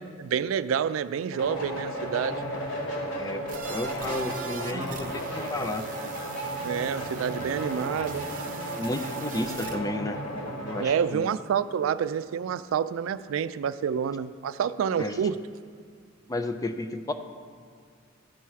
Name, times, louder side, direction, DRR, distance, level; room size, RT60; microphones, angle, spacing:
voice 1, 0.2-2.4 6.6-8.3 10.8-15.4, right 7 dB, 85° right, 14 dB, 0.3 m, -28 dB
sound 1, 1.3-10.9, right 1 dB, 65° left, 2.4 m, -34 dB
sound 2, 3.5-9.8, right 5 dB, 45° right, 0.7 m, -41 dB
voice 2, 3.7-5.9 8.8-10.2 10.6-11.3 15.0-15.3 16.3-17.1, left 1 dB, 20° left, 8 dB, 0.4 m, -32 dB
13.0 x 4.7 x 5.7 m, 2.1 s
head